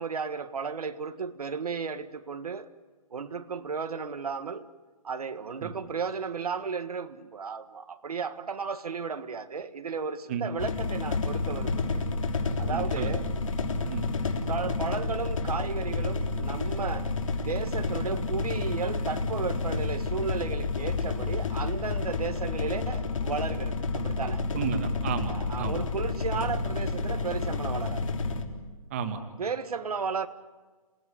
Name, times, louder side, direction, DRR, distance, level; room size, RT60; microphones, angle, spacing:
voice 1, 0.0-2.7 3.1-4.7 5.0-12.0 12.6-13.3 14.5-24.4 25.3-28.1 29.4-30.3, right 5 dB, 75° right, 1.7 m, -34 dB
sound 1, 10.6-28.4, left 3 dB, 60° left, 3.5 m, -30 dB
voice 2, 12.7-13.2 13.9-14.1 24.5-25.8 28.9-29.2, right 6 dB, 20° right, 1.9 m, -32 dB
27.0 x 19.0 x 10.0 m
hypercardioid pair, 175°, 19 cm